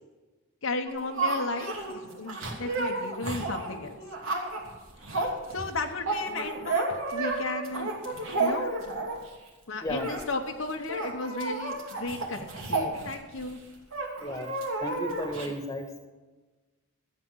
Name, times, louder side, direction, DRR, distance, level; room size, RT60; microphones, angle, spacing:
voice 1, 0.6-4.0 5.5-7.9 8.4-8.7 9.7-13.6, left 3 dB, 65° left, 4 dB, 1.1 m, -34 dB
sound 1, 0.9-9.3 9.9-10.2 10.5-10.6 10.8-13.5 13.9-15.5, right 3 dB, 65° right, 2.8 m, -32 dB
voice 2, 14.8-15.9, equal, 15° left, 4 dB, 1.7 m, -34 dB
13.5 x 8.7 x 6.3 m, 1.2 s
head